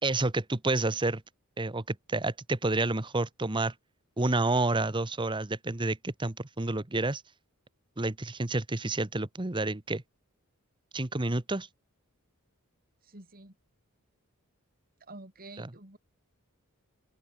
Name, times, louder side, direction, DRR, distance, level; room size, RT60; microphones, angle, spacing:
voice 1, 0.0-1.2 1.6-3.7 4.2-7.2 8.0-10.0 10.9-11.7 15.6-15.7, right 2 dB, 20° right, 1.1 m, -29 dB
voice 2, 13.0-13.6 15.0-16.0, right 2 dB, 40° right, 4.5 m, -48 dB
open air
head